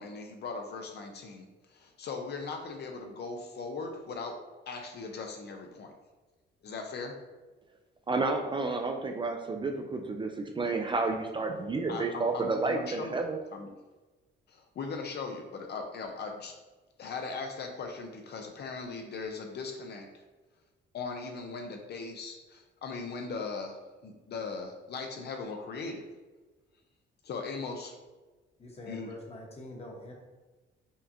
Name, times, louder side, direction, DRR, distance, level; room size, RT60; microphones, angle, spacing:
voice 1, 0.0-4.4 4.7-5.9 6.6-7.1 11.9-13.2 13.5-13.7 14.5-16.5 17.0-20.2 20.9-26.0 27.2-27.9 28.9-29.2, left 4 dB, 55° left, 3 dB, 0.5 m, -39 dB
voice 2, 8.1-13.4, right 3 dB, 25° right, 4 dB, 0.3 m, -31 dB
voice 3, 28.6-30.1, left 1 dB, 30° left, -1 dB, 1.1 m, -44 dB
5.4 x 2.4 x 2.7 m, 1.2 s
cardioid pair, 90°, 20 cm